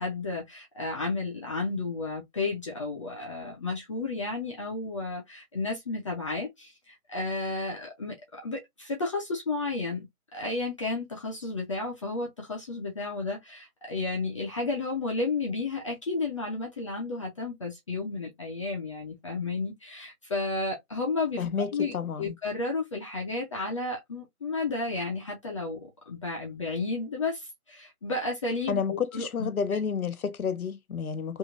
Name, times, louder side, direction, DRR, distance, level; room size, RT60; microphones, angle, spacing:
voice 1, 0.0-10.1 10.3-29.8, left 3 dB, 20° left, 0.7 m, -32 dB
voice 2, 21.4-22.4 28.7-31.4, left 6 dB, 80° left, 0.6 m, -30 dB
3.2 x 2.7 x 2.5 m
figure-of-eight pair, 140°, 43 cm